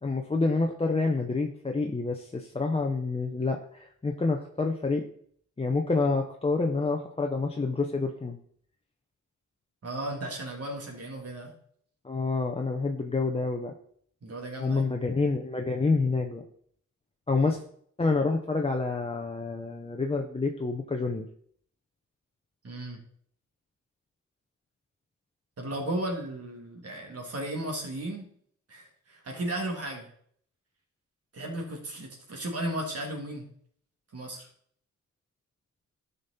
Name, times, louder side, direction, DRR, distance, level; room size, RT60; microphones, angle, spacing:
voice 1, 0.0-5.0 5.6-8.4 12.0-13.7 14.6-16.4 17.3-17.6 18.0-21.3, left 3 dB, 20° left, 1 dB, 0.8 m, -28 dB
voice 2, 9.8-11.5 14.2-14.9 22.6-23.0 25.6-28.3 28.7-30.1 31.3-33.5 34.1-34.5, right 1 dB, 50° right, 0 dB, 2.7 m, -35 dB
13.0 x 5.4 x 4.2 m, 0.63 s
wide cardioid pair, 110°, 31 cm